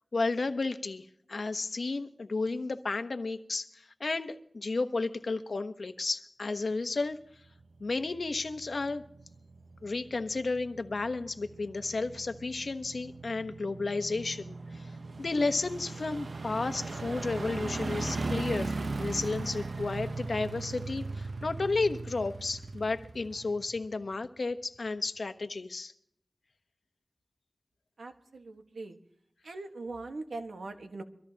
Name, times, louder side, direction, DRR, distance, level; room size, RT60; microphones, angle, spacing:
voice 1, 0.1-7.2 7.8-9.0 9.8-14.9 15.2-25.9, left 3 dB, 65° left, 8 dB, 1.0 m, -32 dB
sound 1, 7.6-24.1 24.5-24.6, right 3 dB, 65° right, 0.8 m, -39 dB
voice 2, 28.0-29.0 29.4-31.0, right 3 dB, 85° right, 5 dB, 1.5 m, -41 dB
24.5 x 13.5 x 2.9 m, 0.72 s
wide cardioid pair, 70°, 0 cm